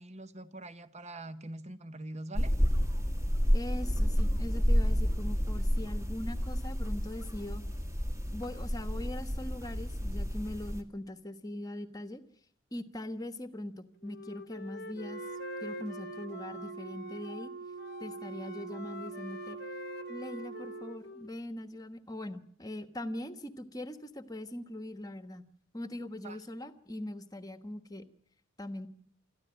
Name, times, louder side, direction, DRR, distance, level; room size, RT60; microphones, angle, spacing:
voice 1, 0.0-2.5 26.2-26.4, right 2 dB, 35° right, 1.0 m, -43 dB
sound 1, 2.3-10.8, equal, 15° right, 1.8 m, -30 dB
voice 2, 3.5-7.6 8.3-12.2 12.7-15.2 15.6-17.5 18.0-19.6 20.1-25.4 25.7-28.1 28.6-28.9, left 1 dB, 20° left, 1.3 m, -41 dB
Wind instrument woodwind instrument, 14.0-17.5 17.8-21.3, left 3 dB, 50° left, 1.0 m, -46 dB
Wind instrument woodwind instrument 2, 14.9-21.0, right 5 dB, 75° right, 2.9 m, -43 dB
26.0 x 14.0 x 9.0 m
head